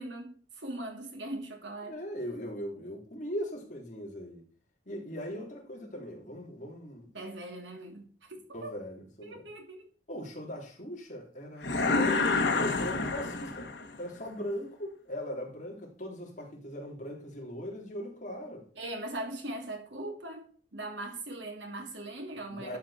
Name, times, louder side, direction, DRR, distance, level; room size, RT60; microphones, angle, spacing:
voice 1, 0.0-2.0 7.1-8.8 9.2-9.8 18.8-22.8, right 1 dB, 85° right, 2.8 m, -40 dB
voice 2, 1.9-4.4 4.9-7.1 8.5-9.4 10.1-12.3 12.5-13.7 14.0-18.6 22.5-22.8, equal, 45° left, 3.4 m, -39 dB
sound 1, 11.6-14.0, left 3 dB, 75° left, 1.6 m, -28 dB
11.5 x 7.1 x 4.3 m
head